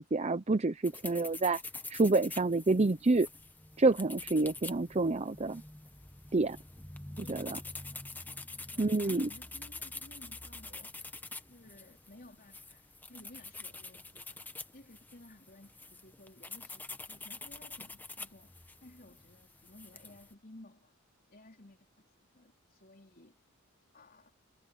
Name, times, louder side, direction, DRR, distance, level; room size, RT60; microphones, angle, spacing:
voice 1, 0.0-1.6 1.9-3.3 3.8-5.6 6.3-6.6 7.3-7.6 8.8-9.3, right 3 dB, 30° right, 0.6 m, -28 dB
sound 1, 0.8-20.3, left 3 dB, 10° left, 1.2 m, -46 dB
voice 2, 7.2-7.5 7.8-8.0 8.7-10.9 11.5-14.4 14.7-20.9 21.3-23.3 23.9-24.3, left 1 dB, 45° left, 4.1 m, -56 dB
head